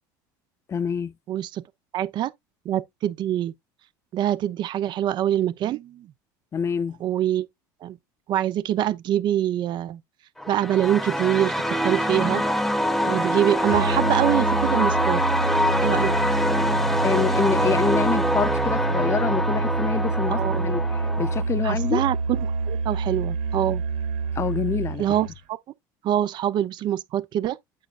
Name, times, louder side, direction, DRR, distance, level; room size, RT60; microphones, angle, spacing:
voice 1, 0.7-1.1 6.5-7.0 17.0-20.8 21.2-22.0 24.3-25.0, left 6 dB, 30° left, 0.7 m, -26 dB
voice 2, 1.3-1.6 1.9-2.3 2.6-3.5 4.1-6.1 7.0-7.5 7.8-8.0 8.3-10.0 10.5-12.4 13.0-15.2 15.8-16.1 20.3-20.6 21.6-22.4 22.7-23.8 25.0-25.6 26.0-27.6, right 11 dB, 50° right, 0.8 m, -24 dB
sound 1, 10.4-21.4, equal, ahead, 1.1 m, -25 dB
Musical instrument, 13.6-25.4, right 3 dB, 65° right, 2.8 m, -27 dB
8.8 x 5.5 x 2.5 m
supercardioid pair, 105°, 10 cm